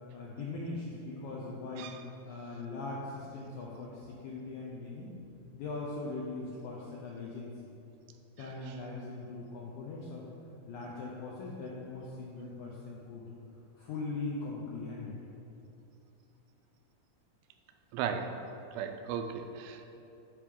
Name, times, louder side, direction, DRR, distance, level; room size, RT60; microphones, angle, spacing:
voice 1, 0.1-2.0 2.3-5.1 5.5-7.5 8.4-10.3 10.7-13.2 13.8-15.2, left 3 dB, 80° left, -4 dB, 1.7 m, -40 dB
voice 2, 8.4-8.7 17.9-18.4 18.7-19.9, right 7 dB, 85° right, 7 dB, 2.4 m, -37 dB
10.0 x 5.0 x 3.6 m, 2.8 s
omnidirectional pair, 4.2 m